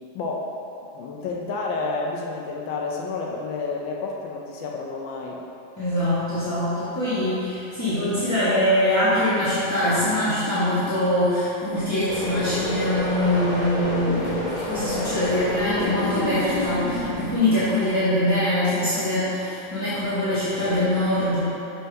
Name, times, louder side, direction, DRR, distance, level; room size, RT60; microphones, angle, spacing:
voice 1, 0.1-0.5 0.9-5.4, left 3 dB, 80° left, -1 dB, 1.3 m, -30 dB
voice 2, 5.8-21.4, left 1 dB, 10° left, -15 dB, 1.0 m, -23 dB
sound 1, 12.1-17.4, left 2 dB, 35° left, 0.7 m, -28 dB
6.6 x 5.5 x 3.4 m, 2.8 s
omnidirectional pair, 2.1 m